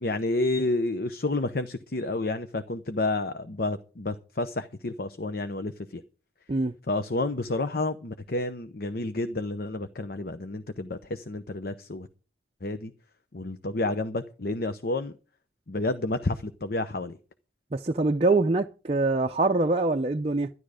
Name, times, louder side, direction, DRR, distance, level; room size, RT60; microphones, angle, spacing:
voice 1, 0.0-6.0 6.9-12.1 12.6-12.9 13.3-15.1 15.7-17.2, left 2 dB, 55° left, 0.8 m, -30 dB
voice 2, 17.7-20.5, right 2 dB, 35° right, 0.5 m, -24 dB
12.5 x 11.0 x 5.0 m
head